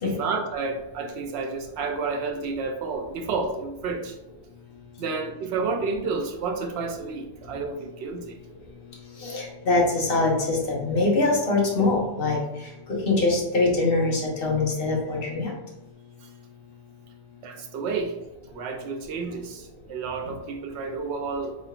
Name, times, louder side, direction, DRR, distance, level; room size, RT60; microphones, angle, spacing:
voice 1, 0.0-4.2 5.0-8.3 17.4-18.2 18.5-21.6, right 4 dB, 85° right, 4 dB, 0.8 m, -30 dB
voice 2, 9.2-12.4 13.0-15.5, left 3 dB, 60° left, -3 dB, 1.2 m, -23 dB
3.8 x 3.3 x 2.4 m, 0.99 s
omnidirectional pair, 1.1 m